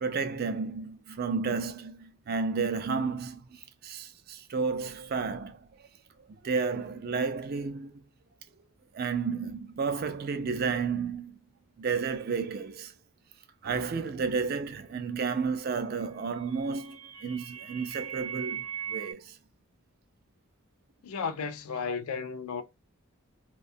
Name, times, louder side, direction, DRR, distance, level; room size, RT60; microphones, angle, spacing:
voice 1, 0.0-5.7 6.4-8.0 8.9-11.4 11.8-12.9 13.6-19.4, right 5 dB, 45° right, 0.3 m, -32 dB
sound 1, 16.0-19.1, right 8 dB, 90° right, 0.7 m, -39 dB
voice 2, 21.0-22.6, left 5 dB, 75° left, 0.4 m, -33 dB
2.6 x 2.2 x 2.6 m
head